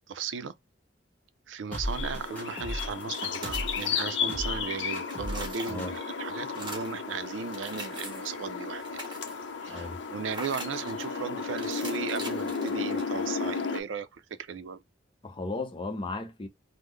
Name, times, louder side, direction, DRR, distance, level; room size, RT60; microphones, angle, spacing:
voice 1, 0.1-0.5 1.5-9.0 9.6-14.8, right 6 dB, 85° right, 0.4 m, -36 dB
sound 1, 1.7-3.8 4.3-4.7 4.9-5.5 5.8-5.9, equal, 10° left, 1.2 m, -35 dB
sound 2, 1.8-13.8, left 5 dB, 70° left, 0.6 m, -34 dB
sound 3, 3.0-4.5 4.8-6.1 6.5-7.0 7.4-8.4 8.7-9.5 10.3-11.1 11.6-13.3, right 1 dB, 25° right, 1.3 m, -42 dB
voice 2, 9.7-10.0 15.2-16.5, left 3 dB, 30° left, 0.5 m, -35 dB
3.6 x 2.0 x 3.1 m
head